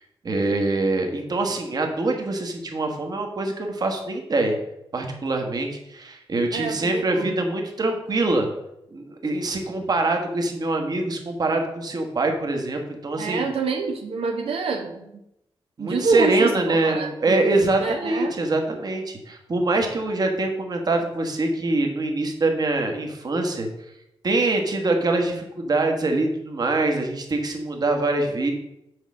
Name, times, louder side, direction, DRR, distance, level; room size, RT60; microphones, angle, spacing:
voice 1, 0.2-4.6 4.9-8.5 8.9-13.5 15.8-23.7 24.2-28.5, right 2 dB, 45° right, 3 dB, 1.3 m, -24 dB
voice 2, 6.5-7.3 13.2-15.1 15.8-17.4 17.8-18.4, right 4 dB, 85° right, 3 dB, 0.9 m, -27 dB
6.4 x 4.6 x 6.3 m, 0.83 s
wide cardioid pair, 125°, 10 cm